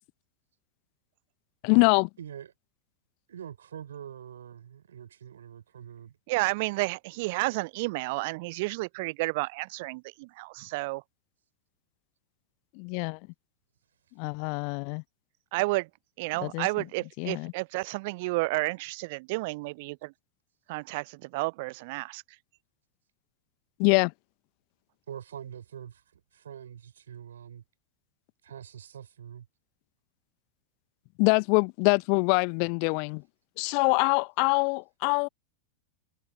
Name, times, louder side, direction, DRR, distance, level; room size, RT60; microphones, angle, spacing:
voice 1, 1.6-2.1 12.7-13.2 14.2-15.0 16.4-16.7 17.2-17.5 23.8-24.1 31.2-33.2 33.6-35.3, left 40 dB or more, 45° left, 1.0 m, -24 dB
voice 2, 2.2-2.5 3.3-6.2 25.1-26.0 26.3-27.6 28.4-29.5, right 9 dB, 65° right, 6.4 m, -44 dB
voice 3, 6.3-11.0 15.5-15.9 16.2-20.1 20.7-22.2, right 25 dB, 50° right, 0.5 m, -31 dB
figure-of-eight pair, 90°, 0 cm